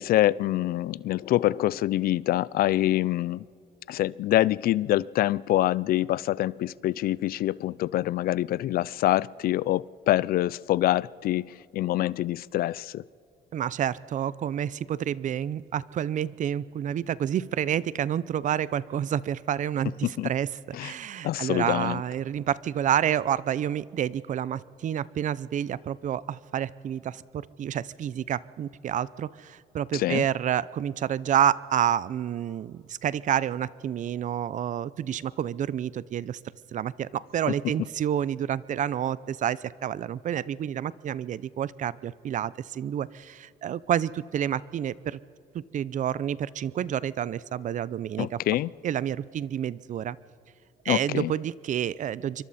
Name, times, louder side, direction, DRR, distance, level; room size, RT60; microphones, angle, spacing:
voice 1, 0.0-3.4 3.9-13.0 20.2-20.3 20.7-20.9 21.2-22.0 29.9-30.2 48.2-48.7 50.9-51.3, left 14 dB, 60° left, 22 dB, 0.4 m, -25 dB
voice 2, 13.5-36.4 36.7-45.2 45.5-48.4 48.8-50.2 50.8-52.4, right 10 dB, 50° right, 19 dB, 0.6 m, -29 dB
26.5 x 24.0 x 4.2 m, 2.5 s
cardioid pair, 110°, 17 cm